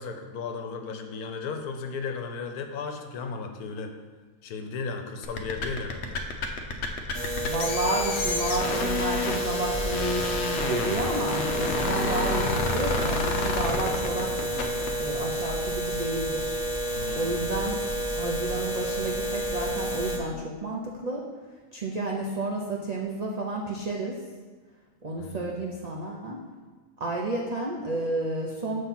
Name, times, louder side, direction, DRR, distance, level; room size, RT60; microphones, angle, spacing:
voice 1, 0.0-3.9 4.4-6.2 16.9-17.8 25.2-25.5, left 4 dB, 75° left, 5 dB, 1.2 m, -35 dB
sound 1, 5.2-14.9, left 3 dB, 60° left, 0.7 m, -30 dB
sound 2, 7.1-20.2, right 1 dB, 15° left, 0.6 m, -30 dB
voice 2, 7.5-14.7 15.0-16.6 17.1-17.8 18.2-21.2 21.7-24.2 25.0-26.4 27.0-28.8, right 2 dB, 85° right, -2 dB, 0.3 m, -31 dB
7.1 x 3.1 x 5.7 m, 1.4 s
omnidirectional pair, 1.6 m